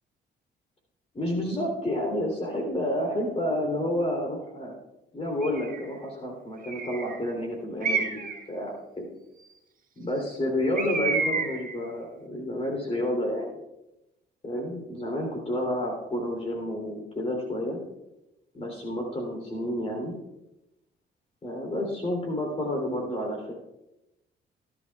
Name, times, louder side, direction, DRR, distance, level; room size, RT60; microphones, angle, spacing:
voice 1, 1.1-4.7 5.1-9.1 10.0-13.6 14.4-17.8 18.5-20.1 21.4-23.5, left 1 dB, 30° left, 1 dB, 3.3 m, -30 dB
Bird, 5.4-5.9 6.6-7.2 7.8-8.4 10.8-11.8, right 4 dB, 45° right, 1.4 m, -29 dB
19.0 x 12.0 x 2.4 m, 0.93 s
cardioid pair, 90°, 20 cm